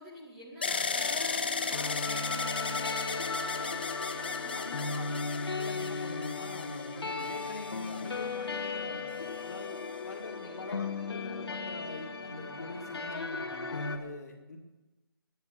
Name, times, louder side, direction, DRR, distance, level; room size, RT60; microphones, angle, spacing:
voice 1, 0.0-3.8 4.1-5.4 10.4-10.8, equal, 5° right, -5 dB, 1.5 m, -49 dB
sound 1, 0.6-8.6 9.3-10.0, left 5 dB, 25° left, 0.4 m, -36 dB
sound 2, 1.0-14.0, left 4 dB, 90° left, 1.9 m, -36 dB
voice 2, 4.5-14.6, left 2 dB, 40° left, 1 dB, 2.2 m, -44 dB
10.5 x 9.9 x 9.1 m, 1.1 s
hypercardioid pair, 175°, 13 cm